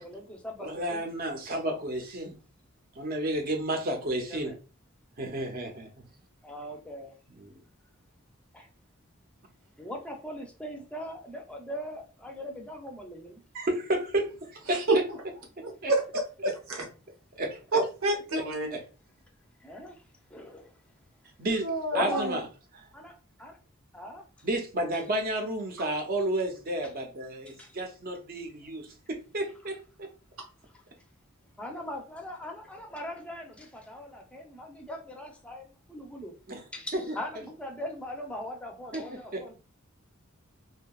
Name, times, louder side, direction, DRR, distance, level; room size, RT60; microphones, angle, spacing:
voice 1, 0.0-1.0 4.3-4.5 6.4-7.1 8.5-8.7 9.8-13.4 19.6-20.0 20.3-20.7 21.9-22.3 22.9-23.1 23.4-23.6 23.9-24.2 27.5-27.7 30.7-30.8 31.6-36.3 36.7-39.5, left 1 dB, 5° left, 0.5 m, -40 dB
voice 2, 0.6-2.3 3.0-4.5 5.2-5.9 7.3-7.6 13.5-15.0 15.8-15.9 16.4-16.5 17.4-17.8 18.7-18.8 21.4-22.4 22.8-22.9 24.4-30.1 36.5-36.6 36.9-37.2 38.9-39.5, right 1 dB, 45° right, 0.6 m, -32 dB
voice 3, 15.9-16.2 17.7-18.7 21.6-22.4, right 2 dB, 90° right, 0.8 m, -27 dB
2.7 x 2.2 x 2.3 m
head